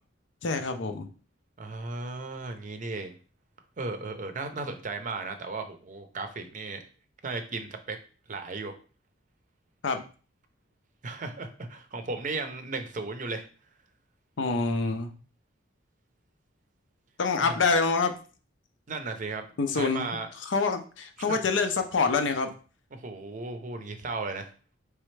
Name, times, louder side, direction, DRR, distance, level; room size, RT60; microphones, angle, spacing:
voice 1, 0.4-1.1 9.8-10.0 14.4-15.1 17.2-18.2 19.6-20.0 20.5-22.5, left 4 dB, 65° left, 7 dB, 0.5 m, -26 dB
voice 2, 1.6-3.2 3.8-6.8 7.2-8.0 8.3-8.7 11.0-13.4 17.4-17.6 18.9-19.4 19.7-20.3 21.3-21.4 22.9-24.5, right 3 dB, 40° right, 7 dB, 0.6 m, -35 dB
4.2 x 3.4 x 3.2 m, 0.38 s
head